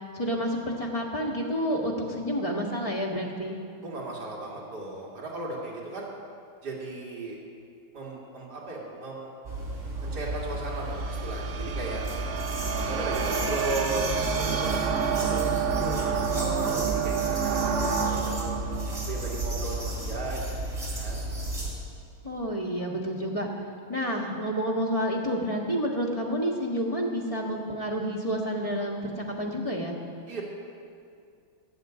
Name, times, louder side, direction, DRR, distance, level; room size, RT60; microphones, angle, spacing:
voice 1, 0.1-3.6 22.2-23.5 23.9-29.9, equal, 20° left, -2 dB, 1.4 m, -29 dB
voice 2, 3.8-6.1 6.6-7.4 7.9-9.6 10.0-12.0 12.7-18.3 19.1-21.2 30.3-30.4, right 2 dB, 55° right, -4 dB, 2.8 m, -36 dB
sound 1, 9.4-21.7, right 1 dB, 30° right, 3.5 m, -33 dB
sound 2, 10.0-20.3, right 7 dB, 70° right, 0.6 m, -30 dB
14.0 x 6.6 x 9.1 m, 2.4 s
omnidirectional pair, 2.2 m